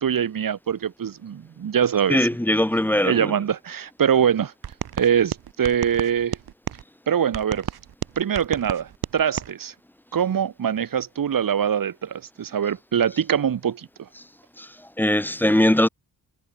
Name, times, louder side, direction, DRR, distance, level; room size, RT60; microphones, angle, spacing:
voice 1, 0.0-2.3 3.0-4.5 5.0-6.4 7.1-7.7 8.2-9.7 10.1-14.1, right 8 dB, 65° right, 2.5 m, -23 dB
voice 2, 2.1-3.3 14.6-14.7 15.0-15.9, left 1 dB, 5° left, 1.0 m, -20 dB
sound 1, 4.6-6.8 7.3-9.5, right 9 dB, 90° right, 3.3 m, -32 dB
wide cardioid pair, 140°, 37 cm